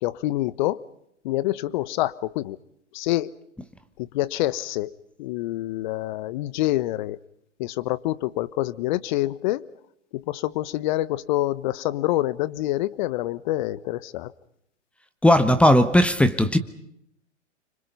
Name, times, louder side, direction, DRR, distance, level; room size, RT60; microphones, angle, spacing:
voice 1, 0.0-0.8 1.2-2.6 2.9-3.3 4.0-4.9 5.2-7.2 7.6-9.7 10.1-14.3, left 16 dB, 40° left, 1.3 m, -26 dB
voice 2, 15.2-16.6, left 1 dB, 5° left, 1.3 m, -17 dB
29.5 x 26.0 x 5.4 m
figure-of-eight pair, 120°, 36 cm